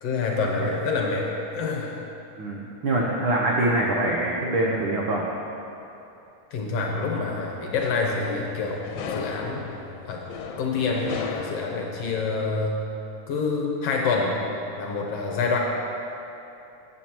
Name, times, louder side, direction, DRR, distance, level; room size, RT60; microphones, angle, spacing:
voice 1, 0.0-2.0 6.5-9.7 10.1-10.3 10.6-12.8 13.3-14.3 14.8-15.6, left 4 dB, 65° left, -1 dB, 1.8 m, -27 dB
voice 2, 2.4-5.3, right 1 dB, 80° right, -3 dB, 1.1 m, -24 dB
sound 1, 7.4-12.5, left 5 dB, 85° left, 2.1 m, -37 dB
13.0 x 9.0 x 3.0 m, 2.8 s
omnidirectional pair, 3.4 m